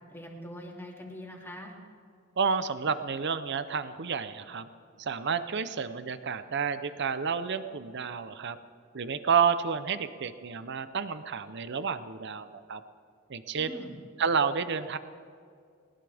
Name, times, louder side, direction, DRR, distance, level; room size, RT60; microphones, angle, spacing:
voice 1, 0.1-1.8 13.6-14.0, left 1 dB, 10° left, -1 dB, 2.8 m, -43 dB
voice 2, 2.4-4.7 5.0-8.6 8.9-12.8 13.3-13.8 14.2-15.0, right 6 dB, 60° right, 12 dB, 0.7 m, -30 dB
20.0 x 20.0 x 3.5 m, 2.3 s
head